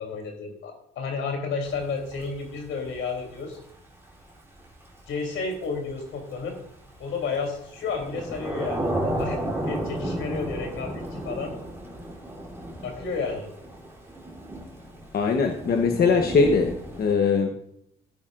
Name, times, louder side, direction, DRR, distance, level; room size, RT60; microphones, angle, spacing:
voice 1, 0.0-3.6 5.1-6.6 7.0-9.4 9.7-11.6 12.8-13.5, left 4 dB, 80° left, 3 dB, 3.3 m, -31 dB
Thunder / Rain, 1.6-17.1, right 1 dB, 10° right, 3.4 m, -34 dB
voice 2, 15.1-17.5, left 4 dB, 50° left, 4 dB, 1.1 m, -21 dB
15.5 x 9.7 x 2.6 m, 0.74 s
cardioid pair, 90°, 20 cm